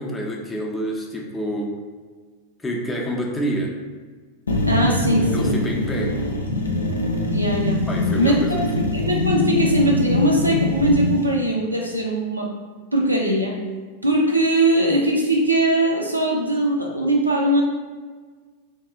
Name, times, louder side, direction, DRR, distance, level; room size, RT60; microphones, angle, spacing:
voice 1, 0.0-1.8 2.6-3.7 5.2-6.2 7.9-8.6, equal, 10° left, 0 dB, 0.5 m, -28 dB
sound 1, 4.5-11.2, left 2 dB, 75° left, 0.4 m, -23 dB
voice 2, 4.6-5.5 7.3-7.8 8.2-8.6 8.9-12.5 12.9-13.6 14.0-17.6, right 1 dB, 85° right, -2 dB, 0.5 m, -20 dB
2.8 x 2.3 x 3.5 m, 1.5 s
figure-of-eight pair, 90°, 0 cm